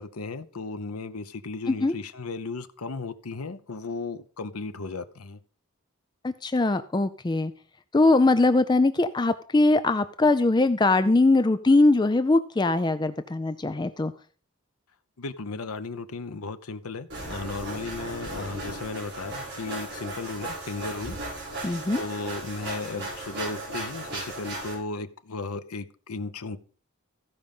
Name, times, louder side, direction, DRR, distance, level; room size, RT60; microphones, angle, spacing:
voice 1, 0.0-5.4 15.2-21.2 21.6-26.6, left 3 dB, 90° left, 11 dB, 0.8 m, -35 dB
voice 2, 6.2-7.5 7.9-14.1 21.6-22.0, left 2 dB, 20° left, 11 dB, 0.4 m, -21 dB
sound 1, 17.1-24.7, right 2 dB, 50° right, 6.2 m, -36 dB
15.5 x 5.2 x 5.4 m, 0.41 s
head